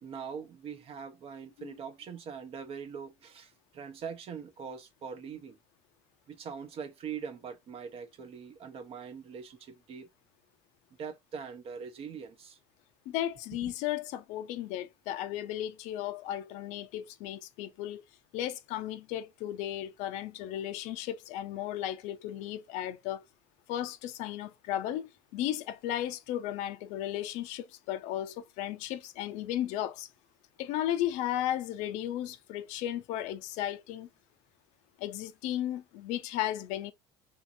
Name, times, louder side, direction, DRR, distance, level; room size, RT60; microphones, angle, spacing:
voice 1, 0.0-5.6 6.3-10.1 11.0-12.6 13.6-13.7, right 6 dB, 50° right, 0.8 m, -42 dB
voice 2, 13.1-18.0 18.3-23.2 23.7-30.1 30.6-34.1 35.0-36.9, left 12 dB, 65° left, 0.5 m, -35 dB
3.0 x 2.7 x 2.5 m
hypercardioid pair, 70°, 13 cm